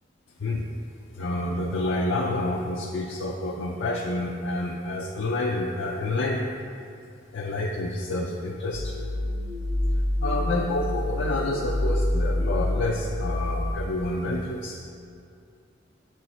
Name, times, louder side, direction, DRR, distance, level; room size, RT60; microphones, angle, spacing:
voice 1, 1.1-6.4 7.3-8.9 10.2-14.8, left 2 dB, 90° left, -1 dB, 0.5 m, -28 dB
sound 1, 8.7-13.7, left 1 dB, 80° right, 0.7 m, -27 dB
7.8 x 4.6 x 4.3 m, 2.4 s
head